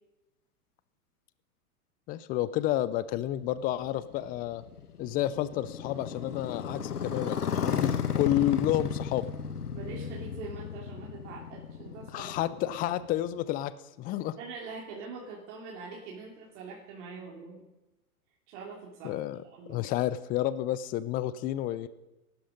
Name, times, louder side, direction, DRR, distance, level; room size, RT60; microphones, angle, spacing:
voice 1, 2.1-4.6 5.0-9.3 12.1-13.7 14.0-14.4 19.0-19.4 19.7-21.9, left 13 dB, 20° left, 16 dB, 0.5 m, -30 dB
Motorcycle, 3.4-13.4, left 7 dB, 85° left, 1.2 m, -34 dB
voice 2, 9.7-12.4 12.7-12.8 14.4-17.6 18.5-19.2 19.4-19.8, right 4 dB, 50° right, -3 dB, 3.3 m, -43 dB
15.5 x 12.0 x 5.2 m, 1.0 s
hypercardioid pair, 110°, 45 cm